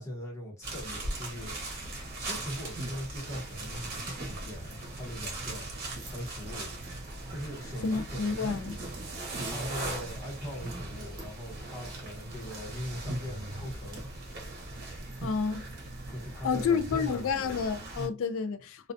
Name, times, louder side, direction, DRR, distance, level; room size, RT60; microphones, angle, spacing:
voice 1, 0.0-1.5 2.2-5.7 6.1-6.7 7.3-8.5 9.4-14.1 16.1-17.6, equal, 15° left, 0.9 m, -40 dB
sound 1, 0.6-18.1, right 2 dB, 45° right, 0.8 m, -39 dB
sound 2, 3.4-16.3, right 3 dB, 60° right, 0.4 m, -50 dB
voice 2, 7.8-8.8 15.2-15.7 16.4-18.9, left 5 dB, 60° left, 0.3 m, -30 dB
2.3 x 2.2 x 2.5 m
head